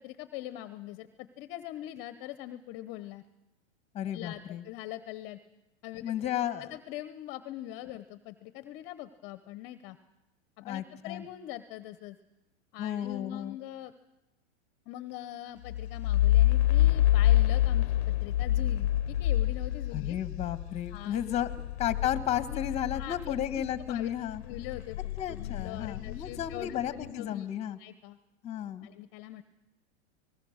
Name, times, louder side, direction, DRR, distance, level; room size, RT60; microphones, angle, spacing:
voice 1, 0.0-3.2 4.1-5.4 5.8-6.1 6.6-10.0 10.6-12.2 12.7-13.9 14.9-17.9 18.2-20.2 20.9-21.2 22.5-22.6 22.9-24.1 24.4-27.5 27.8-28.2 28.8-29.4, left 13 dB, 35° left, 12 dB, 0.9 m, -42 dB
voice 2, 3.9-4.6 6.0-6.7 10.6-11.2 12.8-13.6 19.9-21.5 21.8-24.4 25.2-27.8 28.4-28.9, left 10 dB, 20° left, 12 dB, 1.3 m, -33 dB
sound 1, 15.7-23.9 24.3-26.9, left 14 dB, 80° left, 0.7 m, -27 dB
27.5 x 19.5 x 6.5 m, 0.98 s
hypercardioid pair, 140°, 33 cm